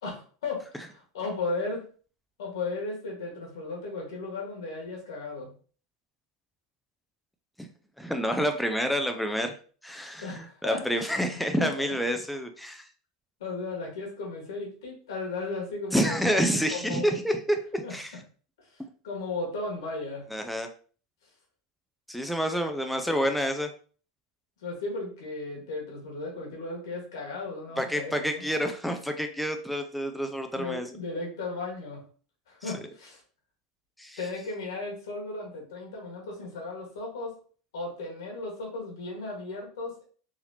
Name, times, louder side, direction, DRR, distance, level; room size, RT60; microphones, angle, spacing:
voice 1, 0.0-1.8 2.4-5.5 10.2-11.1 11.6-11.9 13.4-17.1 17.8-17.9 18.6-20.3 22.6-22.8 24.6-28.5 30.5-32.0 32.5-33.2 34.2-37.4 37.7-40.0, left 3 dB, 80° left, -1 dB, 1.7 m, -35 dB
voice 2, 8.0-9.5 9.8-12.9 15.9-18.1 20.3-20.7 22.1-23.7 27.8-30.9 32.6-32.7 34.0-34.2, equal, ahead, 5 dB, 0.4 m, -28 dB
4.0 x 2.8 x 2.8 m, 0.41 s
hypercardioid pair, 100°, 2 cm